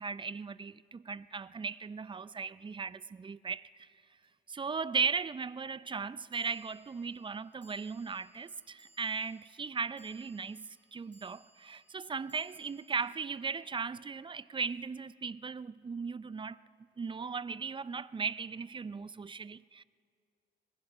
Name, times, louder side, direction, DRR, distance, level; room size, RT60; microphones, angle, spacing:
voice 1, 0.0-3.9 4.5-16.6 17.0-19.8, right 5 dB, 25° right, 0.5 m, -37 dB
sound 1, 4.2-4.3 6.3-14.7, right 1 dB, 10° left, 6.6 m, -66 dB
25.0 x 21.0 x 5.4 m
cardioid pair, 90°, 20 cm